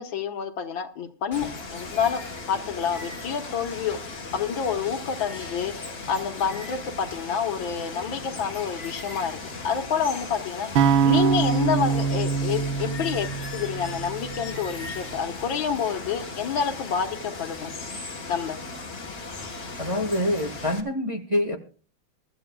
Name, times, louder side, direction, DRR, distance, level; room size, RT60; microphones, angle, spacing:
voice 1, 0.0-2.2 2.5-4.0 4.3-9.4 9.6-17.7 18.3-18.6, left 7 dB, 85° left, 2.0 m, -28 dB
Water, 1.3-20.8, left 3 dB, 35° left, 1.5 m, -37 dB
sound 1, 10.8-14.9, right 6 dB, 80° right, 1.5 m, -24 dB
voice 2, 19.8-21.6, left 1 dB, 20° right, 1.1 m, -26 dB
23.5 x 13.5 x 2.3 m
omnidirectional pair, 2.1 m